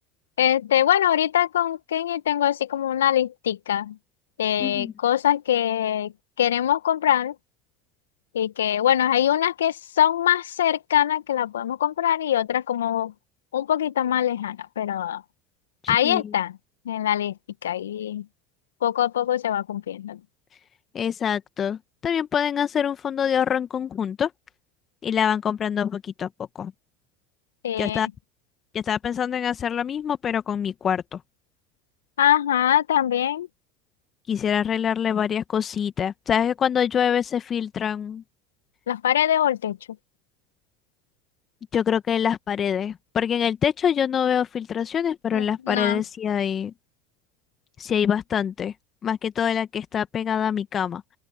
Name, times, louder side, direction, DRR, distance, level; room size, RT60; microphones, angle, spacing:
voice 1, 0.4-4.0 4.4-6.1 6.4-7.3 8.3-13.1 13.5-15.2 15.9-16.6 16.9-17.3 17.6-18.2 18.8-20.2 27.6-28.1 32.2-33.5 38.9-39.8 45.3-46.0, left 10 dB, 80° left, 1.9 m, -23 dB
voice 2, 4.6-4.9 15.8-16.3 20.9-24.3 25.0-26.3 26.5-26.7 27.8-28.1 28.7-31.2 34.3-38.2 41.7-46.7 47.8-48.7 49.0-51.0, left 8 dB, 40° left, 1.7 m, -25 dB
open air
hypercardioid pair, 75°, 0 cm